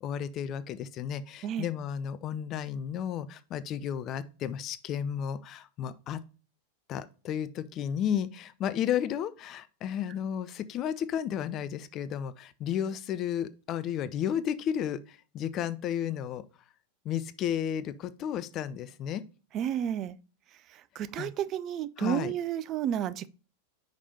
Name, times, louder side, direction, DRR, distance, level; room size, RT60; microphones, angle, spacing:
voice 1, 0.0-6.2 6.9-16.5 17.0-19.2 21.2-21.3 22.0-22.3, left 9 dB, 35° left, 0.5 m, -33 dB
voice 2, 19.5-20.2 21.0-23.3, right 10 dB, 35° right, 0.4 m, -31 dB
5.2 x 4.9 x 4.0 m
figure-of-eight pair, 90°, 0 cm